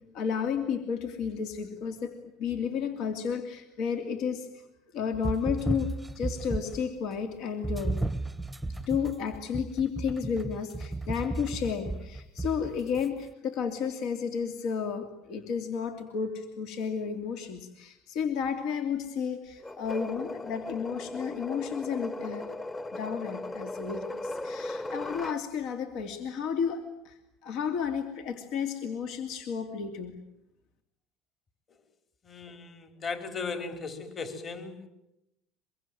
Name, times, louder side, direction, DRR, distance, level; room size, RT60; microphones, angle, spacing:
voice 1, 0.0-4.6 4.9-8.0 8.9-22.5 22.9-30.2, left 6 dB, 65° left, 7 dB, 2.8 m, -32 dB
sound 1, 5.1-6.9 7.6-13.1, right 2 dB, 5° right, 1.0 m, -34 dB
sound 2, 19.6-25.4, left 2 dB, 20° left, 1.4 m, -37 dB
voice 2, 32.2-34.9, left 4 dB, 35° left, 7 dB, 4.5 m, -37 dB
24.0 x 23.0 x 9.3 m, 0.85 s
supercardioid pair, 110°, 0 cm